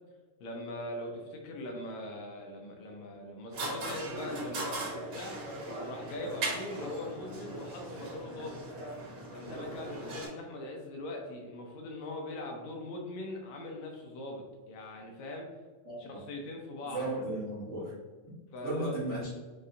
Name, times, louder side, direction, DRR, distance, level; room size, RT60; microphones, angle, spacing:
voice 1, 0.4-5.4 5.8-8.6 9.3-15.5 16.0-17.1 18.5-19.0, left 1 dB, 75° left, 1 dB, 1.9 m, -41 dB
sound 1, 3.5-10.3, right 2 dB, 60° right, 1.5 m, -39 dB
voice 2, 16.8-17.9 18.6-19.3, right 1 dB, 85° right, -9 dB, 0.6 m, -35 dB
5.5 x 2.2 x 3.7 m, 1.3 s
omnidirectional pair, 3.5 m